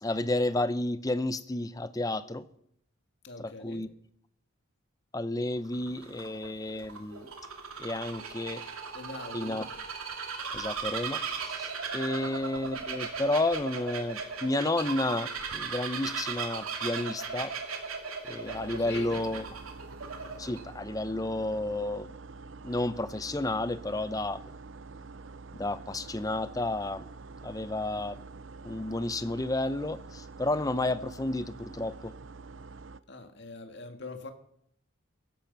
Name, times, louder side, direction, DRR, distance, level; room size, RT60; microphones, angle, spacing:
voice 1, 0.0-2.4 3.4-3.9 5.1-7.3 7.8-8.6 9.3-9.7 10.5-17.5 18.3-19.4 20.4-22.1 22.6-24.4 25.5-27.1 27.4-28.2 28.6-32.1, left 2 dB, 15° left, 14 dB, 0.7 m, -31 dB
voice 2, 3.2-3.8 8.9-9.6 12.2-12.3 18.8-19.2 33.1-34.3, left 2 dB, 55° left, 6 dB, 2.0 m, -42 dB
Bird vocalization bird call bird song, 5.6-20.6, right 5 dB, 90° right, 2.6 m, -37 dB
sound 1, 18.4-33.0, right 4 dB, 65° right, 0.6 m, -46 dB
16.0 x 13.5 x 5.4 m, 0.70 s
head